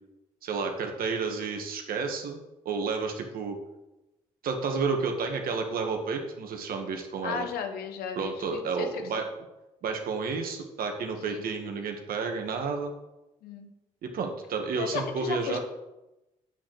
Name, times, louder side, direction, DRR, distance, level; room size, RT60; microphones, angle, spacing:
voice 1, 0.4-2.4 2.7-3.6 4.4-7.5 8.2-9.2 9.8-12.9 14.0-15.6, right 4 dB, 60° right, 4 dB, 2.0 m, -31 dB
voice 2, 7.2-9.2 11.3-11.4 13.4-13.7 14.8-15.6, left 6 dB, 65° left, 6 dB, 1.5 m, -35 dB
8.5 x 6.6 x 7.8 m, 0.97 s
hypercardioid pair, 45°, 17 cm